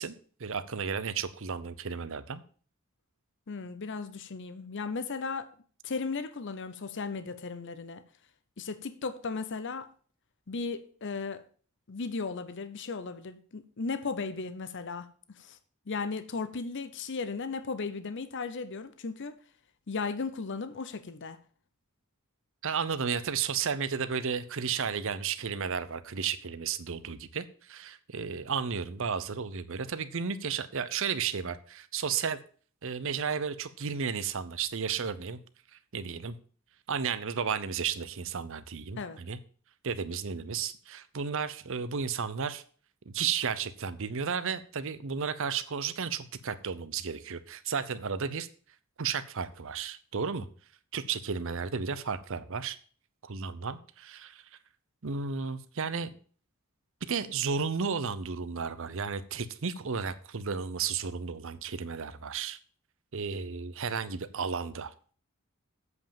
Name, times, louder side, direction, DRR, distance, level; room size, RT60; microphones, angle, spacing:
voice 1, 0.0-2.4 22.6-32.4 32.8-35.4 35.9-36.4 36.9-39.4 39.8-42.6 43.1-48.5 49.0-50.5 50.9-52.8 53.2-54.4 55.0-56.2 57.0-62.6 63.1-64.9, right 6 dB, 60° right, 0.7 m, -33 dB
voice 2, 3.5-5.5 5.8-8.0 8.6-9.9 10.5-11.4 11.9-15.1 15.4-15.6 15.9-19.4 19.9-21.4 39.0-39.2, left 4 dB, 55° left, 0.7 m, -36 dB
8.0 x 5.3 x 7.0 m
head